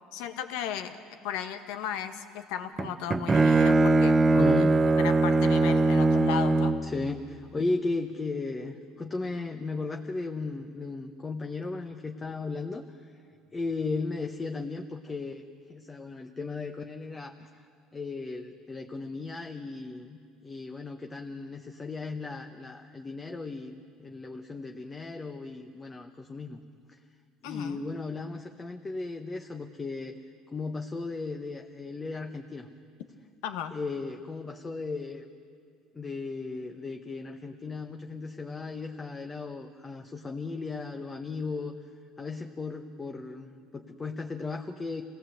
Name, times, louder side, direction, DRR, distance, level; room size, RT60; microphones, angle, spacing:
voice 1, 0.1-1.0 1.2-4.5 5.0-6.7 27.4-27.8 33.4-33.7, left 9 dB, 80° left, 8 dB, 1.5 m, -35 dB
Bowed string instrument, 2.8-6.9, right 3 dB, 20° right, 0.7 m, -21 dB
voice 2, 4.4-4.7 6.8-13.1 13.5-26.6 27.4-30.2 30.5-32.7 33.7-35.3 35.9-41.8 42.2-45.0, left 3 dB, 20° left, 4 dB, 1.0 m, -36 dB
27.0 x 17.5 x 7.9 m, 2.2 s
cardioid pair, 125°, 0 cm